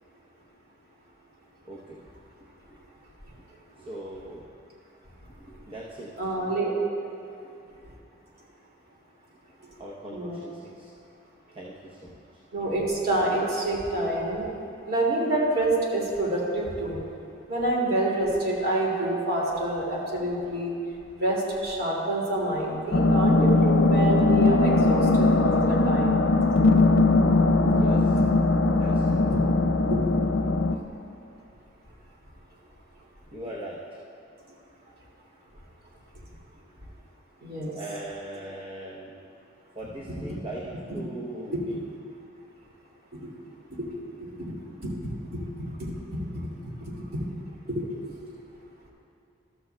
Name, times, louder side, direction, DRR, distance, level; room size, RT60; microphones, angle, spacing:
voice 1, 1.7-2.0 3.8-4.5 5.4-6.1 9.8-10.9 11.5-12.2 27.7-28.2 28.7-29.2 33.3-33.8 37.7-39.2 39.7-41.7, right 1 dB, 30° right, -3 dB, 0.8 m, -40 dB
voice 2, 6.2-6.7 10.1-10.4 12.5-14.5 14.9-17.0 17.5-20.7 21.2-26.2 37.4-37.8 40.3-40.4 44.2-44.5 45.0-45.1 45.8-45.9 46.8-47.2 47.7-47.8, right 2 dB, 55° right, -4 dB, 2.3 m, -27 dB
sound 1, 22.9-30.7, left 2 dB, 85° left, 0.6 m, -20 dB
13.5 x 13.0 x 2.3 m, 2.7 s
head